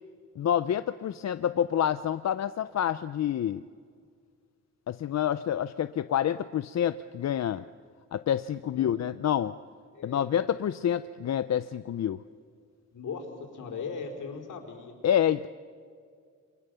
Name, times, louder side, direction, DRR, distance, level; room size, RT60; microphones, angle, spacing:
voice 1, 0.4-3.6 4.9-7.6 8.1-9.5 10.0-12.2 15.0-15.5, left 10 dB, 60° left, 12 dB, 0.5 m, -28 dB
voice 2, 9.9-10.3 12.9-13.3 13.5-15.0, left 5 dB, 80° left, 2 dB, 4.3 m, -38 dB
28.0 x 24.5 x 6.9 m, 2.1 s
wide cardioid pair, 165°, 31 cm